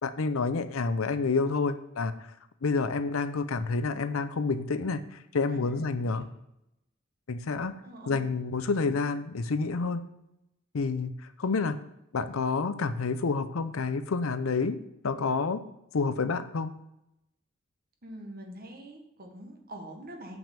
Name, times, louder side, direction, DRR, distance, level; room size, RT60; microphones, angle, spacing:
voice 1, 0.0-2.1 2.6-6.3 7.3-7.7 8.1-10.0 10.7-11.1 11.4-11.8 12.1-14.8 15.0-15.6 15.9-16.7, left 4 dB, 85° left, 12 dB, 0.6 m, -28 dB
voice 2, 5.5-6.3 7.8-8.2 18.0-20.4, right 1 dB, 45° right, 3 dB, 1.4 m, -45 dB
6.0 x 5.4 x 6.8 m, 0.84 s
head